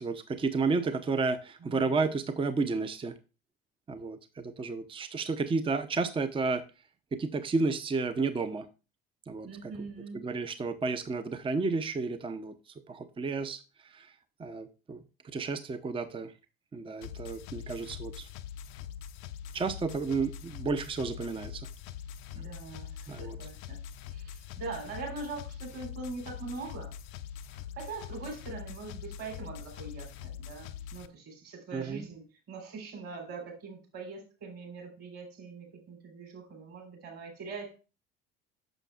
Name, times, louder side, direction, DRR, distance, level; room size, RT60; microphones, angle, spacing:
voice 1, 0.0-3.1 3.9-6.6 7.1-8.7 9.3-9.7 10.1-12.5 12.9-14.1 14.4-16.3 16.7-18.3 19.5-21.6 23.1-23.4 31.7-32.0, right 4 dB, 20° right, 10 dB, 0.6 m, -32 dB
voice 2, 1.6-2.0 9.4-10.2 22.3-23.8 24.1-26.9 27.5-37.8, right 4 dB, 50° right, 2 dB, 3.8 m, -42 dB
sound 1, 17.0-31.1, left 9 dB, 65° left, 0.6 m, -43 dB
8.9 x 6.7 x 2.4 m, 0.32 s
hypercardioid pair, 60°, 29 cm